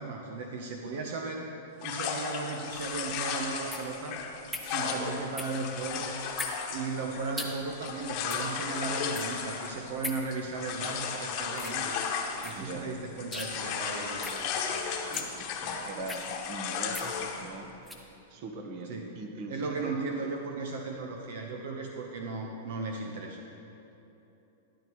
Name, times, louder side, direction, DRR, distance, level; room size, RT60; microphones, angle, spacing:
voice 1, 0.0-1.5 1.8-4.2 4.6-6.1 6.7-11.9 12.4-14.8 18.9-19.1 19.5-23.4, right 3 dB, 65° right, 2 dB, 0.9 m, -36 dB
sound 1, 1.8-12.9 13.2-17.5, left 6 dB, 40° left, 1.1 m, -35 dB
sound 2, 2.7-18.1, left 1 dB, ahead, 0.8 m, -43 dB
voice 2, 14.0-14.3 14.9-17.7 18.3-19.9, right 2 dB, 45° right, 4 dB, 1.2 m, -41 dB
12.5 x 10.5 x 3.1 m, 3.0 s
hypercardioid pair, 145°, 0 cm